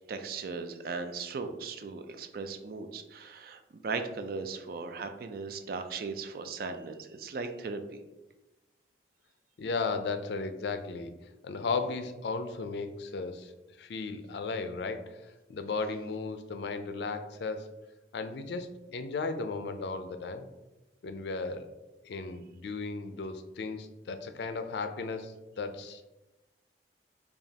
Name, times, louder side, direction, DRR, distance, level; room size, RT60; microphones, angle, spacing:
voice 1, 0.1-8.0, right 4 dB, 55° right, 8 dB, 0.4 m, -38 dB
voice 2, 9.6-11.1 11.4-13.5 13.8-15.2 15.5-17.7 18.1-20.5 21.0-21.7 22.0-26.1, left 4 dB, 70° left, 8 dB, 0.4 m, -35 dB
5.0 x 2.3 x 2.7 m, 1.0 s
head